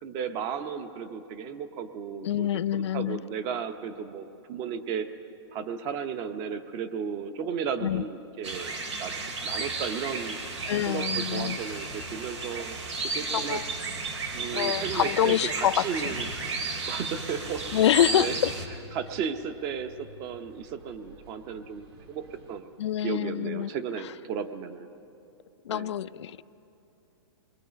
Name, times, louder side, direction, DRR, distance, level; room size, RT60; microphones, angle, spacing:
voice 1, 0.0-5.1 5.5-10.4 10.9-12.8 13.1-13.6 14.3-16.3 16.9-17.7 18.2-18.4 18.9-22.7 23.0-24.9 25.7-25.9, right 7 dB, 25° right, 10 dB, 0.8 m, -34 dB
voice 2, 2.2-3.2 7.8-8.0 10.7-11.6 13.3-13.7 14.5-15.9 17.7-18.5 22.8-23.7 25.6-26.4, left 11 dB, 75° left, 16 dB, 0.5 m, -26 dB
sound 1, 8.4-18.7, right 3 dB, 85° right, 2.6 m, -33 dB
sound 2, 9.4-22.6, right 2 dB, 70° right, 4.6 m, -52 dB
27.5 x 21.5 x 5.2 m, 2.9 s
hypercardioid pair, 165°, 15 cm